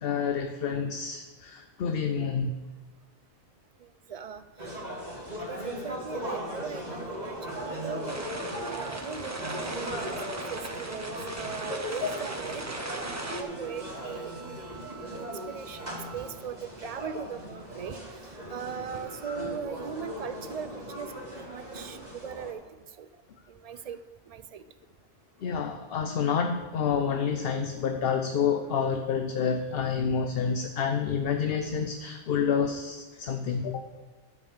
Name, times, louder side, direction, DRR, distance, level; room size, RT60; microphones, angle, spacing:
voice 1, 0.0-2.5 11.7-12.1 25.4-33.9, left 6 dB, 60° left, 6 dB, 0.8 m, -28 dB
voice 2, 4.1-4.4 5.5-12.7 13.3-14.3 15.0-18.0 18.5-23.1 23.5-24.0 24.3-24.6, right 7 dB, 60° right, 10 dB, 0.4 m, -39 dB
sound 1, 4.6-22.5, equal, 35° right, 2.3 m, -38 dB
sound 2, 8.1-13.4, right 2 dB, 20° right, 0.6 m, -38 dB
sound 3, 13.6-16.6, right 4 dB, 90° left, 2.1 m, -49 dB
12.0 x 5.3 x 7.1 m, 1.4 s
omnidirectional pair, 1.2 m